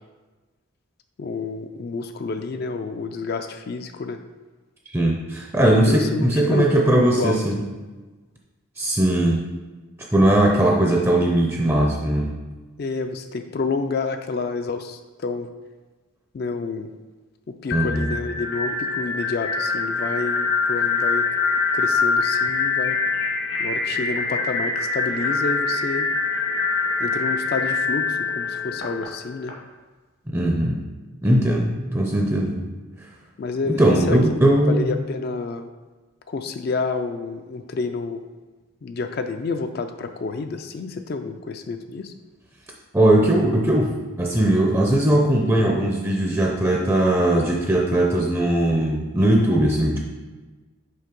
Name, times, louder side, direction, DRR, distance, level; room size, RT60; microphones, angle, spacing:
voice 1, 1.2-4.2 5.9-7.7 12.8-15.5 16.3-16.9 17.6-21.3 21.7-23.0 23.6-26.1 27.0-29.5 33.4-35.7 36.3-38.2 38.8-42.1, left 4 dB, 45° left, 7 dB, 0.3 m, -29 dB
voice 2, 4.9-7.6 8.8-9.5 10.1-12.3 17.7-18.2 30.3-30.8 31.2-32.6 33.6-34.9 42.9-50.0, right 1 dB, 10° right, 0 dB, 0.5 m, -19 dB
sound 1, 17.7-29.5, left 4 dB, 70° left, 1.2 m, -24 dB
5.6 x 3.5 x 5.2 m, 1.3 s
head